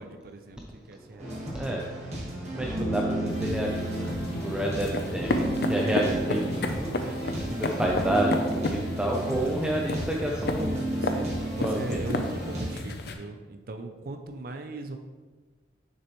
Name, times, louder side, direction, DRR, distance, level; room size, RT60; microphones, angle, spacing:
voice 1, 0.0-1.8 5.0-5.7 7.0-7.8 9.1-9.6 10.2-10.3 10.6-15.0, right 2 dB, 55° right, 6 dB, 0.5 m, -40 dB
voice 2, 1.1-1.9 2.5-7.0 7.4-10.8 11.5-12.0, right 1 dB, 5° right, -2 dB, 0.5 m, -30 dB
sound 1, 1.2-12.7, right 1 dB, 35° right, 1.7 m, -32 dB
sound 2, 3.3-13.1, left 1 dB, 60° left, 0.6 m, -33 dB
6.7 x 6.5 x 3.1 m, 1.3 s
head